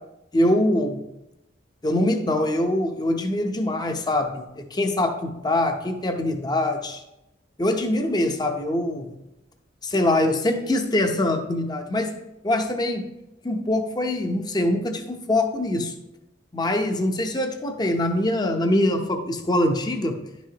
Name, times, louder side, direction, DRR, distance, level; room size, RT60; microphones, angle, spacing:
voice 1, 0.3-1.0 1.8-7.0 7.6-9.1 9.8-12.1 12.4-13.1 13.4-15.9 16.5-20.2, left 1 dB, 20° left, 5 dB, 0.7 m, -23 dB
10.5 x 6.1 x 2.9 m, 0.90 s
head